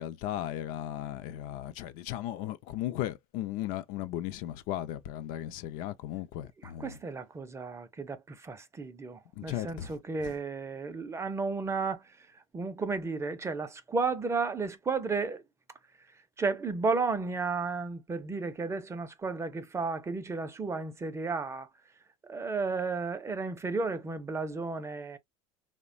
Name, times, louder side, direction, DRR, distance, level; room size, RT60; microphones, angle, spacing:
voice 1, 0.0-7.0 9.4-10.0 10.2-10.3, left 13 dB, 60° left, 0.5 m, -36 dB
voice 2, 6.8-12.0 12.5-15.4 16.4-21.7 22.2-25.2, right 4 dB, 15° right, 0.5 m, -33 dB
2.9 x 2.2 x 2.5 m
supercardioid pair, 110°, 16 cm